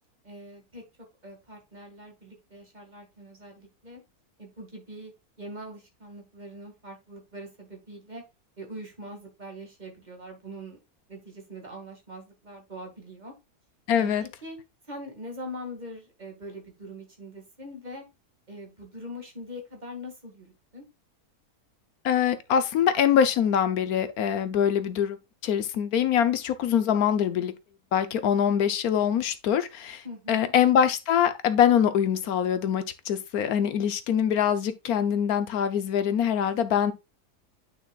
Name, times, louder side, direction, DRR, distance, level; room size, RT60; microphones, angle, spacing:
voice 1, 0.2-0.8 1.2-4.0 4.4-5.1 5.4-8.2 8.6-10.8 11.1-13.3 14.0-14.1 14.4-14.6 14.9-18.0 18.5-20.8 30.0-30.5, equal, 30° right, 2.1 m, -42 dB
voice 2, 13.9-14.2 22.0-25.2 25.4-27.5 27.9-36.9, left 8 dB, 70° left, 1.3 m, -24 dB
9.4 x 5.7 x 2.4 m
omnidirectional pair, 1.6 m